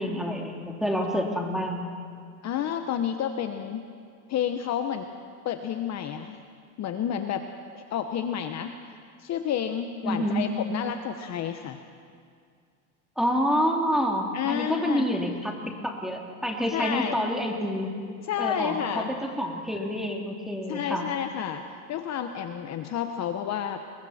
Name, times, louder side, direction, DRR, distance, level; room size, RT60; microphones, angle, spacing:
voice 1, 0.0-1.8 10.0-10.5 13.2-15.5 15.8-18.1 18.4-21.1, equal, ahead, 0 dB, 3.0 m, -28 dB
voice 2, 2.4-3.8 4.3-5.1 5.4-6.4 6.8-7.4 7.7-8.7 9.2-11.8 14.3-15.1 16.7-17.2 18.2-19.1 20.7-21.6 21.9-23.8, left 9 dB, 40° left, 6 dB, 1.1 m, -30 dB
29.5 x 22.5 x 4.4 m, 2.1 s
supercardioid pair, 120°, 42 cm